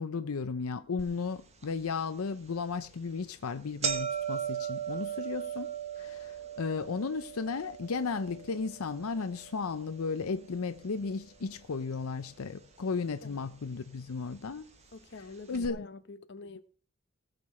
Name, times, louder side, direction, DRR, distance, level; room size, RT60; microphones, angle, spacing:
voice 1, 0.0-5.7 6.0-14.7 15.5-15.9, left 4 dB, 80° left, 0.6 m, -34 dB
sound 1, 1.0-1.1 1.6-1.7 2.5-2.7 3.1-3.2 3.4-11.6 11.9-12.7 13.5-13.6 14.5-14.6 14.9-15.0 15.5-15.7, right 8 dB, 30° right, 1.2 m, -38 dB
voice 2, 12.9-13.5 14.9-16.6, left 3 dB, 50° left, 0.9 m, -47 dB
18.5 x 6.7 x 4.3 m
head